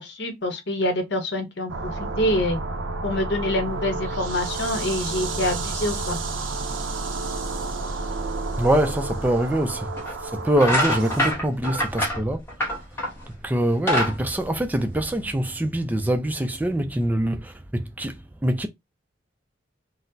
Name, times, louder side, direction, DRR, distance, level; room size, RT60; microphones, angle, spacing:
voice 1, 0.0-2.6 3.0-6.2, left 1 dB, 65° left, 0.9 m, -26 dB
sound 1, 1.7-11.3, right 3 dB, 90° right, 0.6 m, -30 dB
voice 2, 8.6-12.4 13.4-18.7, right 1 dB, 10° right, 0.4 m, -24 dB
sound 2, 9.2-9.3 10.0-10.2 10.5-13.2 13.6-15.3, equal, 15° left, 1.0 m, -25 dB
4.1 x 2.0 x 2.6 m
head